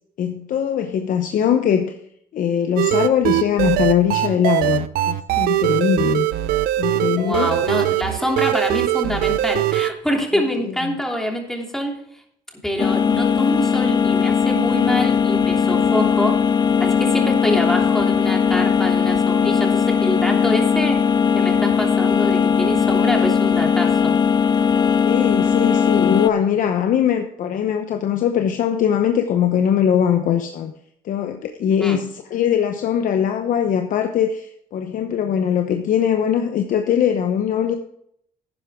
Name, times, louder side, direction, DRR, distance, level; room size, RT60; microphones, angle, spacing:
voice 1, 0.2-1.9 2.3-6.3 6.8-7.5 10.3-11.0 25.0-30.7 31.0-37.7, left 9 dB, 65° left, 6 dB, 0.9 m, -21 dB
sound 1, 2.8-9.9, right 14 dB, 85° right, 0.6 m, -21 dB
voice 2, 7.1-11.9 12.6-16.4 16.8-21.0 21.3-24.2 31.8-32.0, equal, 5° left, 0 dB, 3.0 m, -25 dB
sound 2, 12.8-26.3, left 6 dB, 30° left, 0.4 m, -18 dB
11.5 x 9.6 x 3.7 m, 0.69 s
cardioid pair, 100°, 15 cm